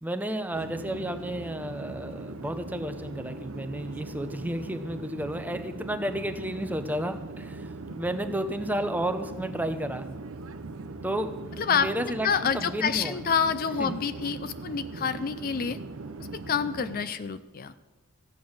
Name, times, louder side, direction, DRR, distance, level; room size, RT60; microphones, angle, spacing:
voice 1, 0.0-7.7 8.0-10.1 11.0-11.3 11.7-13.2 13.8-14.0 15.0-15.1, right 1 dB, 10° right, 8 dB, 0.7 m, -32 dB
Conversation / Chatter / Fixed-wing aircraft airplane, 0.5-17.2, right 3 dB, 65° right, 0.7 m, -40 dB
voice 2, 11.6-11.9 12.2-15.8 16.3-17.7, left 6 dB, 40° left, 13 dB, 0.4 m, -28 dB
14.5 x 9.2 x 6.4 m, 1.2 s
head